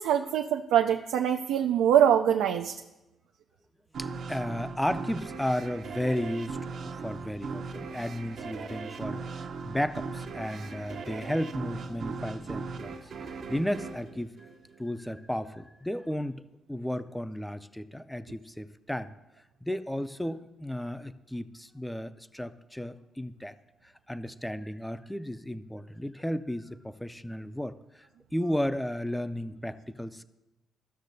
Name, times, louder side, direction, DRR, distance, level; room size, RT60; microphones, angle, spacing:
voice 1, 0.0-2.7, right 9 dB, 90° right, 4 dB, 0.3 m, -23 dB
sound 1, 3.9-15.1, right 4 dB, 65° right, 0.7 m, -39 dB
voice 2, 4.0-6.6 6.8-14.5 14.8-16.4 16.7-19.1 19.6-23.5 23.8-28.1 28.3-30.2, equal, 5° left, 13 dB, 0.4 m, -34 dB
15.0 x 6.4 x 2.6 m, 1.0 s
cardioid pair, 90°, 0 cm